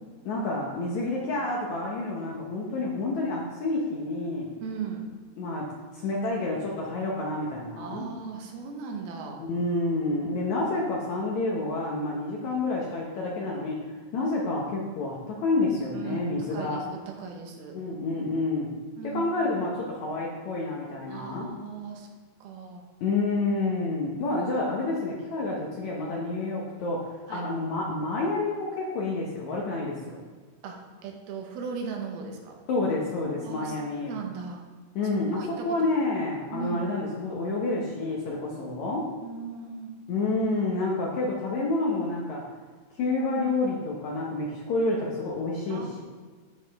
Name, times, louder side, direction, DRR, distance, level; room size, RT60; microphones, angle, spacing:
voice 1, 0.3-4.5 5.4-5.7 5.9-8.1 9.4-16.8 17.7-18.7 19.0-21.5 23.0-30.2 32.7-34.1 34.9-39.1 40.1-42.5 43.0-46.0, left 2 dB, 70° left, -2 dB, 1.8 m, -29 dB
voice 2, 4.6-5.1 7.8-9.4 15.9-16.2 16.5-17.8 19.0-19.2 21.1-22.1 22.4-22.9 27.3-27.4 30.6-32.6 33.4-33.8 34.1-34.6 35.0-35.9 36.5-36.8 38.7-38.8 39.2-40.0 45.7-45.9, right 5 dB, 80° right, 2 dB, 2.9 m, -37 dB
13.5 x 4.9 x 3.5 m, 1.5 s
omnidirectional pair, 4.4 m